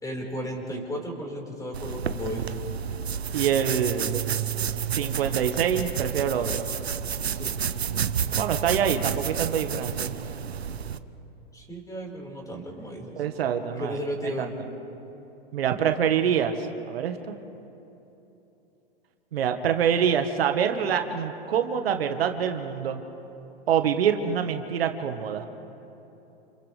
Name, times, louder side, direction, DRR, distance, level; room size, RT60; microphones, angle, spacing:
voice 1, 0.0-2.6 7.3-7.6 11.5-13.2 13.8-14.5, equal, 10° left, 0 dB, 4.9 m, -34 dB
sound 1, 1.7-11.0, right 8 dB, 90° right, 0.9 m, -30 dB
voice 2, 3.3-4.2 5.0-6.7 8.4-10.1 13.2-14.0 14.2-14.5 15.5-16.5 16.9-17.4 19.3-23.0 23.7-25.5, right 8 dB, 70° right, 6 dB, 1.6 m, -25 dB
28.5 x 28.5 x 3.4 m, 3.0 s
hypercardioid pair, 105°, 31 cm